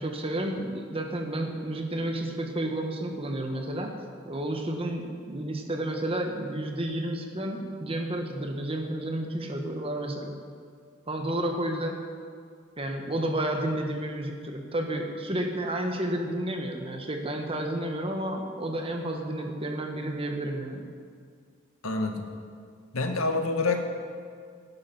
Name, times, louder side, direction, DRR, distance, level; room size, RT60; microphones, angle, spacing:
voice 1, 0.0-3.9 4.2-10.3 11.1-12.0 12.8-20.9, right 1 dB, 25° right, 3 dB, 1.6 m, -31 dB
voice 2, 21.8-22.2 22.9-23.8, left 3 dB, 90° left, 4 dB, 1.8 m, -27 dB
17.5 x 11.0 x 6.1 m, 2.1 s
head